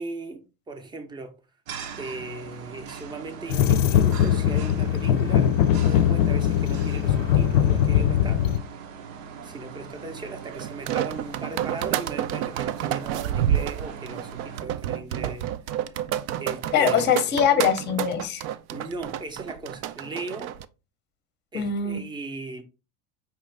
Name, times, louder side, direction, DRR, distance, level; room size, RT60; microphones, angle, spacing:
voice 1, 0.0-1.3 2.0-8.4 9.4-15.5 15.9-16.1 16.4-17.3 18.4-20.6 21.5-22.6, right 3 dB, 10° right, 0.6 m, -38 dB
sound 1, 1.7-14.6, right 7 dB, 90° right, 0.9 m, -41 dB
sound 2, 3.5-8.6, left 10 dB, 80° left, 0.6 m, -21 dB
sound 3, 10.6-20.6, right 11 dB, 65° right, 0.5 m, -29 dB
voice 2, 16.7-18.4 21.5-22.0, left 8 dB, 25° left, 0.7 m, -22 dB
5.6 x 2.5 x 3.2 m
supercardioid pair, 140°, 39 cm